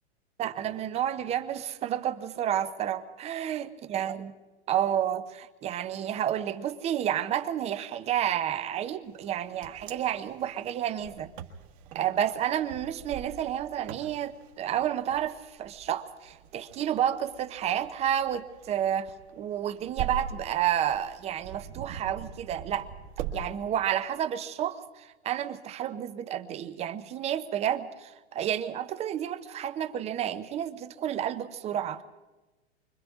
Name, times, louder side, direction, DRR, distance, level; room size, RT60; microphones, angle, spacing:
voice 1, 0.4-4.3 4.7-11.3 11.9-22.9 23.3-32.0, right 10 dB, 20° right, 11 dB, 0.7 m, -30 dB
Wind, 9.2-23.4, right 8 dB, 50° right, 1.8 m, -42 dB
29.0 x 25.0 x 3.7 m, 1.2 s
hypercardioid pair, 140°, 34 cm